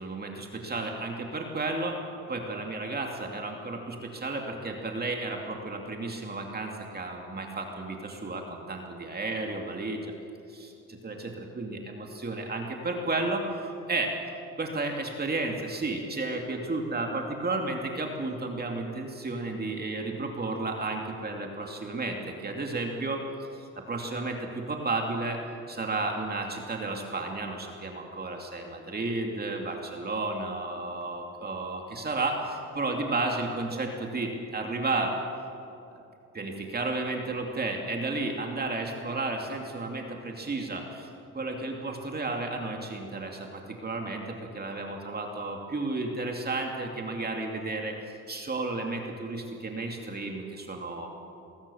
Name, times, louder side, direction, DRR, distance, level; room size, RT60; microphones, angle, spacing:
voice 1, 0.0-2.0 2.3-10.1 10.5-14.1 14.6-23.2 23.5-25.4 25.7-35.2 36.3-41.1 41.3-51.1, right 2 dB, 30° right, 2 dB, 2.6 m, -32 dB
21.0 x 18.5 x 7.1 m, 2.7 s
cardioid pair, 90°, 30 cm